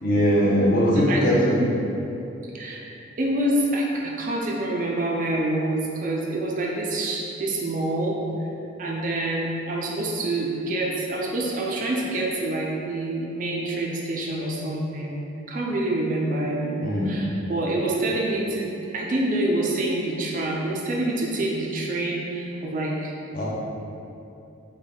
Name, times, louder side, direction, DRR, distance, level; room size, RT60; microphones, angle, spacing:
voice 1, 0.0-1.5 16.8-17.2 23.3-23.4, equal, 45° left, -6 dB, 0.6 m, -20 dB
voice 2, 0.9-1.3 2.5-2.8 3.2-8.5 8.8-15.2 15.5-23.1, right 1 dB, 40° right, -2 dB, 0.3 m, -26 dB
3.4 x 2.2 x 3.7 m, 2.8 s
head